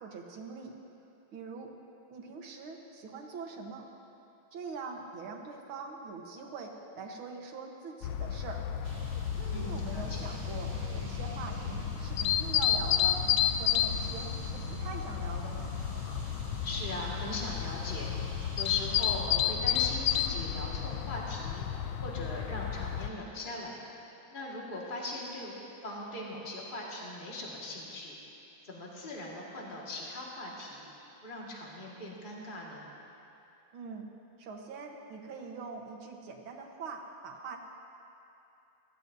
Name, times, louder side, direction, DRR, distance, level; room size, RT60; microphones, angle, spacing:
voice 1, 0.0-0.7 1.3-1.7 2.1-3.9 4.5-8.6 9.4-13.2 13.6-15.7 33.7-34.1 34.4-37.6, right 4 dB, 85° right, 1 dB, 2.1 m, -43 dB
sound 1, 8.0-23.1, left 10 dB, 80° left, 1.3 m, -32 dB
sound 2, 8.8-19.3, right 3 dB, 60° right, 1.7 m, -45 dB
voice 2, 9.5-10.4 16.6-21.7 22.0-23.8 24.3-25.5 25.8-28.1 28.6-30.9 31.2-32.9, left 1 dB, 25° left, -4 dB, 1.9 m, -40 dB
22.5 x 16.0 x 2.7 m, 2.8 s
omnidirectional pair, 2.2 m